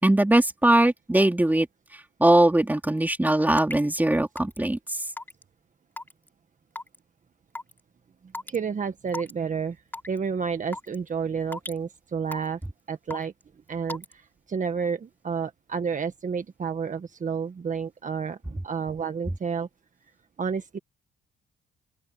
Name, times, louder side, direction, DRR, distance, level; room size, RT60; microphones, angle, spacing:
voice 1, 0.0-1.7 2.2-4.8, right 1 dB, 10° right, 3.3 m, -20 dB
Raindrop / Water tap faucet / Drip, 3.6-3.8 4.4-4.6 5.2-5.4 6.0-6.3 6.8-7.0 7.5-7.7 8.3-8.6 9.1-9.3 9.9-10.2 10.7-11.0 11.5-11.8 12.3-12.6 13.1-13.4 13.9-14.1, left 2 dB, 10° left, 3.3 m, -35 dB
voice 2, 8.5-9.8 10.1-12.6 12.9-13.3 13.7-19.7 20.4-20.8, right 6 dB, 40° right, 1.6 m, -30 dB
open air
cardioid pair, 90°, 20 cm